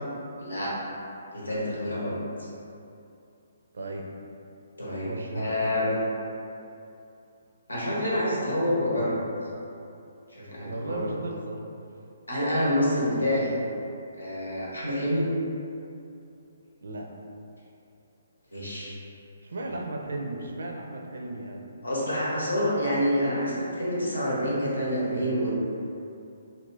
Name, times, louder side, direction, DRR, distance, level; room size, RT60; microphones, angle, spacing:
voice 1, 0.4-0.7 1.3-2.2 4.8-5.1 5.3-5.9 7.7-9.2 10.3-11.0 12.3-13.5 14.2-15.3 18.5-18.9 19.6-19.7 21.8-25.5, equal, 80° left, -6 dB, 1.0 m, -27 dB
voice 2, 3.7-4.1 5.0-5.6 10.6-11.6 16.8-17.2 19.4-21.6 22.0-22.1, right 2 dB, 65° right, 1 dB, 0.4 m, -35 dB
2.7 x 2.5 x 3.6 m, 2.7 s
figure-of-eight pair, 135°, 0 cm